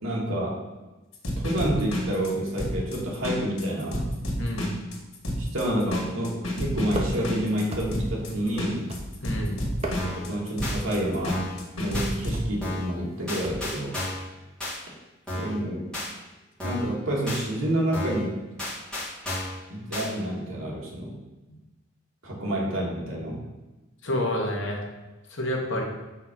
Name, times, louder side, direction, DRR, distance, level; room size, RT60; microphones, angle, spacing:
voice 1, 0.0-0.6 1.4-4.1 5.4-8.9 10.2-11.4 11.8-14.0 15.3-15.9 16.6-18.4 19.7-21.2 22.2-23.4, right 1 dB, 70° right, -3 dB, 1.7 m, -28 dB
sound 1, 1.1-12.4, equal, 80° left, 1.8 m, -30 dB
voice 2, 4.4-4.7 9.2-9.6 24.0-24.8 25.3-25.8, left 1 dB, 60° left, 0 dB, 1.3 m, -28 dB
sound 2, 6.9-7.4 7.7-8.2 8.9-9.3 9.7-10.3 11.1-11.5 12.3-12.6 13.4-13.8, right 1 dB, 30° right, 0.7 m, -35 dB
sound 3, 10.0-10.3 10.6-10.8 11.3-11.6 11.9-12.1 12.6-12.9 13.3-14.3 14.6-14.8 15.3-15.6 15.9-16.1 16.6-16.9 17.3-17.4 17.9-18.2 18.6-19.6 19.9-20.1, left 1 dB, 5° left, 1.9 m, -32 dB
5.6 x 3.6 x 5.9 m, 1.1 s
head